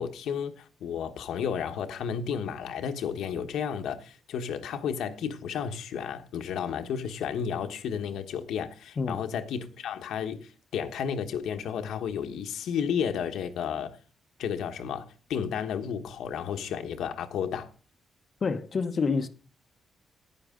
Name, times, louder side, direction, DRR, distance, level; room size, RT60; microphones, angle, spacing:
voice 1, 0.0-14.0 14.4-17.7, left 7 dB, 85° left, 1.2 m, -32 dB
voice 2, 18.4-19.3, left 4 dB, 40° left, 0.8 m, -27 dB
10.0 x 9.8 x 3.7 m
cardioid pair, 130°, 0 cm